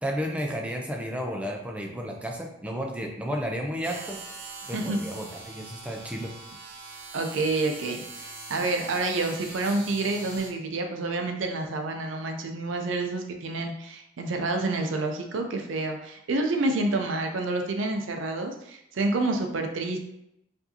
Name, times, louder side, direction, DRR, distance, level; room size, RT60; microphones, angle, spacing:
voice 1, 0.0-4.2 4.7-6.3, equal, 5° right, 1 dB, 0.5 m, -32 dB
sound 1, 3.8-10.5, right 3 dB, 45° right, 0.9 m, -42 dB
voice 2, 7.1-20.0, right 2 dB, 75° right, 4 dB, 0.5 m, -28 dB
4.6 x 2.6 x 2.7 m, 0.79 s
head